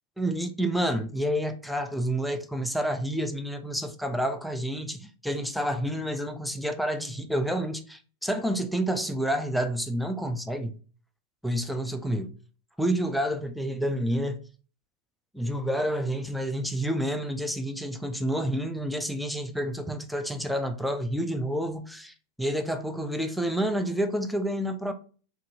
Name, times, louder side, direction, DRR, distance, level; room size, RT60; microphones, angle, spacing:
voice 1, 0.2-10.7 11.4-12.3 12.8-14.4 15.3-24.9, equal, ahead, 0.5 m, -29 dB
3.7 x 3.1 x 2.7 m
figure-of-eight pair, 90°, 0 cm